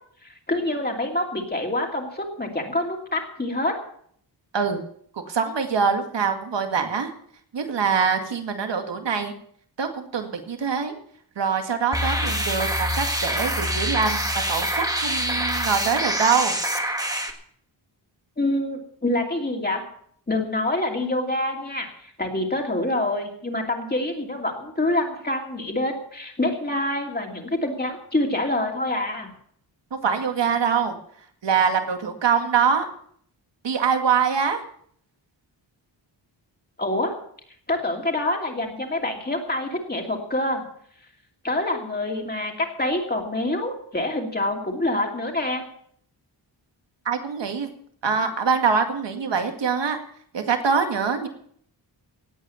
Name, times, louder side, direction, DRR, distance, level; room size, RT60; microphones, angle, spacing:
voice 1, 0.2-3.7 18.4-19.8 20.3-29.3 36.8-37.1 37.7-40.6 41.4-45.6, left 1 dB, 20° left, 1 dB, 2.7 m, -26 dB
voice 2, 5.3-7.1 7.5-9.3 9.8-10.9 11.4-14.2 14.5-16.5 29.9-31.0 31.4-32.9 33.6-34.6 47.1-47.7 48.0-50.0 50.3-51.3, right 6 dB, 70° right, 6 dB, 2.1 m, -24 dB
sound 1, 11.9-17.3, equal, 10° right, 1.6 m, -25 dB
18.0 x 8.6 x 7.0 m, 0.63 s
wide cardioid pair, 155°, 44 cm